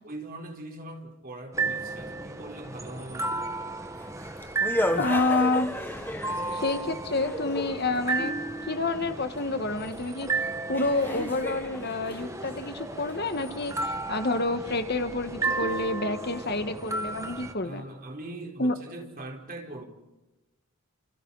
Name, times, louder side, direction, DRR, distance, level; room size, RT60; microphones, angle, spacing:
voice 1, 0.0-3.5 16.2-16.3 17.6-19.8, right 1 dB, 40° right, 2 dB, 4.4 m, -41 dB
sound 1, 1.5-17.5, right 3 dB, 15° right, 1.6 m, -34 dB
sound 2, 3.9-8.2 10.1-10.2 10.7-13.2, left 1 dB, 10° left, 1.4 m, -34 dB
voice 2, 5.0-5.7 6.5-8.3 8.7-10.3 10.7-17.8 18.6-18.7, left 2 dB, 45° left, 8 dB, 1.6 m, -28 dB
30.0 x 29.5 x 4.2 m, 1.0 s
head